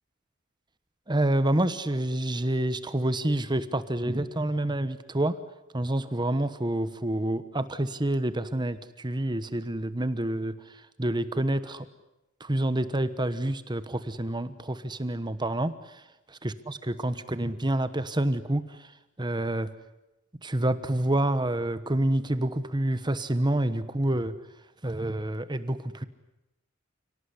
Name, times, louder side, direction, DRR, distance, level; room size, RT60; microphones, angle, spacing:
voice 1, 1.1-5.4 5.7-10.5 11.0-11.9 12.4-15.9 16.4-18.9 19.2-19.7 20.4-24.4 24.8-26.0, right 1 dB, 20° right, 12 dB, 1.2 m, -28 dB
29.0 x 18.5 x 9.8 m, 0.96 s
head